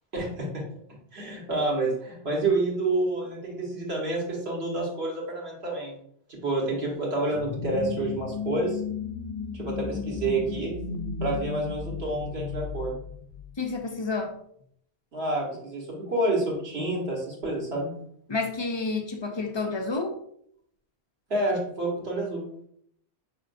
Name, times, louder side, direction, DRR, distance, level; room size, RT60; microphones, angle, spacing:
voice 1, 0.1-0.6 1.1-6.0 6.3-8.8 9.5-10.8 11.2-12.9 15.1-17.9 21.3-22.4, right 2 dB, 75° right, -2 dB, 1.6 m, -28 dB
sound 1, 7.3-13.8, left 5 dB, 75° left, 0.8 m, -34 dB
voice 2, 13.6-14.3 18.3-20.1, left 3 dB, 35° left, 3 dB, 0.5 m, -29 dB
5.4 x 3.5 x 2.6 m, 0.68 s
omnidirectional pair, 1.1 m